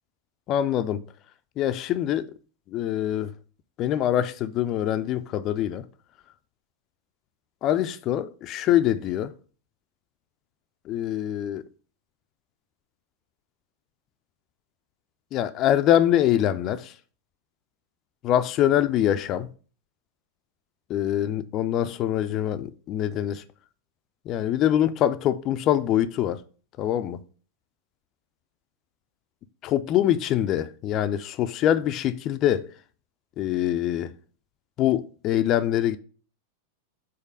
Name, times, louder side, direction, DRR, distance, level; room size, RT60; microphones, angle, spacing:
voice 1, 0.5-1.0 1.6-2.3 2.7-3.3 3.8-5.8 7.6-9.3 10.9-11.6 15.3-16.9 18.2-19.5 20.9-23.4 24.3-26.4 26.8-27.2 29.6-32.7 33.4-34.1 34.8-36.0, left 11 dB, 35° left, 0.3 m, -24 dB
5.1 x 4.0 x 5.2 m
figure-of-eight pair, 90°, 0 cm